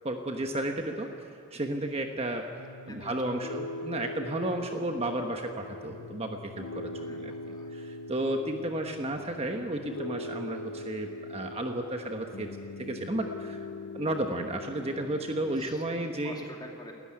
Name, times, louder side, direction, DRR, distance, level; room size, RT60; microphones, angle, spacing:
voice 1, 0.0-2.5 2.9-7.3 7.7-12.5 12.8-13.7 13.9-16.4, right 1 dB, 25° right, 4 dB, 1.2 m, -33 dB
Piano, 2.6-15.7, left 2 dB, 80° left, 0.6 m, -41 dB
voice 2, 2.9-3.5 7.0-7.8 8.4-8.7 15.5-16.9, left 1 dB, 20° left, 1 dB, 2.6 m, -49 dB
29.0 x 13.5 x 9.8 m, 2.5 s
head